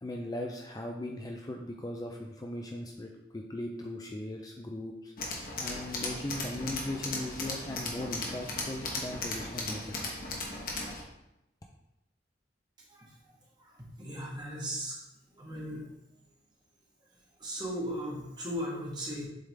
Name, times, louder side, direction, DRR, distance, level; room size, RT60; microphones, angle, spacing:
voice 1, 0.0-5.1 5.6-10.2, left 1 dB, 20° left, 2 dB, 0.4 m, -38 dB
Tools, 5.2-11.0, left 2 dB, 50° left, 1.2 m, -37 dB
voice 2, 14.0-15.0 15.4-15.9 17.4-19.3, equal, 25° right, -4 dB, 1.4 m, -36 dB
7.7 x 3.6 x 3.4 m, 0.87 s
head